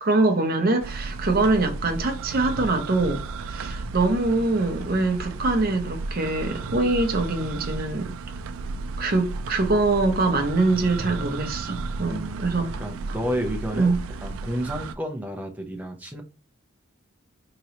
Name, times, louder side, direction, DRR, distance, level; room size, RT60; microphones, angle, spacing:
voice 1, 0.0-8.1 9.0-12.7 13.7-14.0, right 2 dB, 45° right, 0.7 m, -23 dB
sound 1, 0.8-14.9, right 3 dB, 85° right, 0.4 m, -34 dB
voice 2, 12.1-12.4 12.8-13.9 14.2-16.2, equal, 10° right, 0.7 m, -31 dB
3.8 x 3.0 x 2.9 m
head